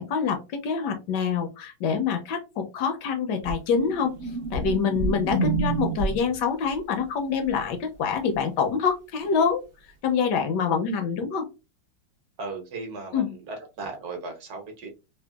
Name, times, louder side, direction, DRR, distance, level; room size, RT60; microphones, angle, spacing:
voice 1, 0.0-4.1 4.5-9.6 10.0-11.5 13.1-13.4, left 6 dB, 70° left, 1.1 m, -26 dB
sound 1, 3.4-6.4 9.2-9.3, right 3 dB, 80° right, 0.6 m, -28 dB
voice 2, 12.4-14.9, right 3 dB, 60° right, 1.2 m, -36 dB
3.5 x 2.1 x 2.2 m
omnidirectional pair, 2.1 m